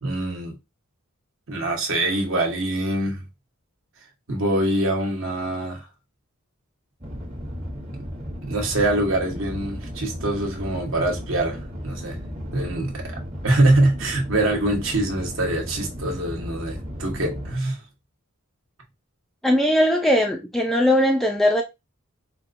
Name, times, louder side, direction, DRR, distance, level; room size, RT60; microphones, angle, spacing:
voice 1, 0.0-0.5 1.5-3.2 4.3-5.8 8.4-12.2 12.5-13.0 13.4-17.8, right 1 dB, 60° right, 1.0 m, -24 dB
sound 1, 7.0-17.6, equal, 25° right, 0.9 m, -34 dB
voice 2, 19.4-21.6, left 1 dB, ahead, 0.3 m, -19 dB
4.4 x 2.2 x 2.5 m
head